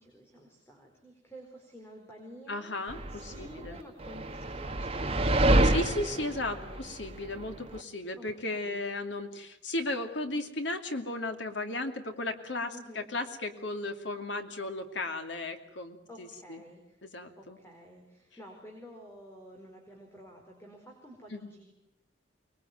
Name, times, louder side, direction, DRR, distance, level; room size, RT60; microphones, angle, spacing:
voice 1, 0.0-6.1 6.5-6.9 8.1-8.8 12.7-13.1 16.1-21.7, equal, 15° left, 1 dB, 4.5 m, -51 dB
voice 2, 2.5-3.8 5.6-16.6 17.0-17.6 21.3-21.5, left 2 dB, 65° left, 6 dB, 2.6 m, -35 dB
sound 1, 2.9-7.8, right 1 dB, 30° right, 1.7 m, -27 dB
24.5 x 21.5 x 9.3 m, 0.85 s
head